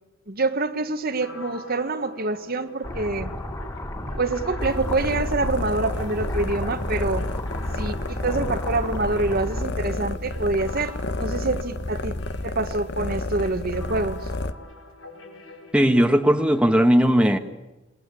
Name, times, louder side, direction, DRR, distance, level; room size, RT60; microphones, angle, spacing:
voice 1, 0.3-3.3 4.2-7.2 7.8-12.1 12.4-14.3, right 2 dB, 50° right, 1.7 m, -26 dB
sound 1, 1.1-16.6, left 2 dB, 90° left, 6.1 m, -45 dB
sound 2, 2.8-9.6, equal, 15° left, 3.2 m, -32 dB
sound 3, 4.6-14.5, left 2 dB, 55° left, 1.2 m, -30 dB
voice 2, 15.7-17.4, equal, 5° right, 1.3 m, -18 dB
27.5 x 21.5 x 8.4 m
head